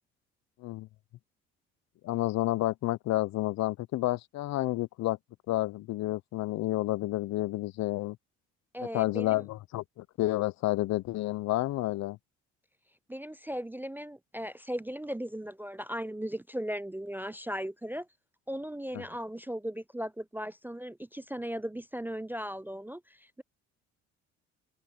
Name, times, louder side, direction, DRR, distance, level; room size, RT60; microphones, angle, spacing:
voice 1, 2.0-5.2 5.5-8.2 8.9-12.2 18.9-19.0, left 17 dB, 65° left, 0.7 m, -30 dB
voice 2, 8.7-9.4 13.1-18.1 18.5-23.4, equal, 5° right, 0.3 m, -37 dB
open air
supercardioid pair, 70°, 30 cm